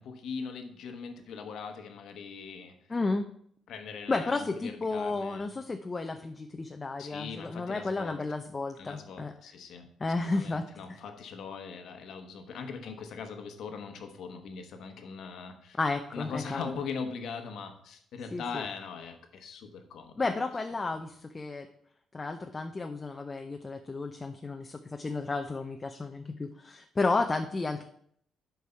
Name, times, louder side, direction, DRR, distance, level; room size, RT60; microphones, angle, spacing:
voice 1, 0.0-2.8 3.7-5.5 7.0-8.2 8.8-15.8 16.1-20.2, left 5 dB, 75° left, 6 dB, 1.2 m, -41 dB
voice 2, 2.9-3.3 4.1-9.3 10.0-10.7 15.8-16.8 18.3-18.6 20.2-21.7 22.1-27.8, left 3 dB, 25° left, 5 dB, 0.6 m, -32 dB
8.3 x 4.6 x 5.6 m, 0.66 s
cardioid pair, 90°, 0 cm